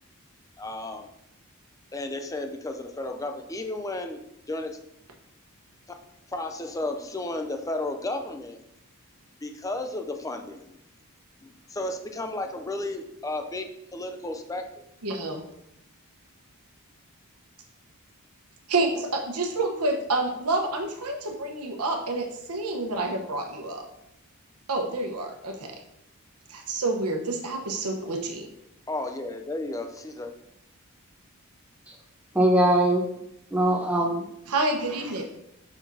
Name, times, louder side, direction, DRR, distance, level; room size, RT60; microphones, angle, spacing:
voice 1, 0.6-1.1 1.9-4.2 4.5-4.8 6.3-8.6 9.4-10.8 11.4-14.9 28.9-30.3, left 2 dB, 15° left, 6 dB, 0.5 m, -33 dB
voice 2, 15.0-15.4 18.7-23.8 24.7-25.7 26.5-28.5 34.5-35.2, right 2 dB, 85° right, 3 dB, 1.1 m, -28 dB
voice 3, 32.3-33.0 33.5-34.3, right 1 dB, 5° right, -1 dB, 0.9 m, -21 dB
6.1 x 5.9 x 2.8 m, 0.80 s
head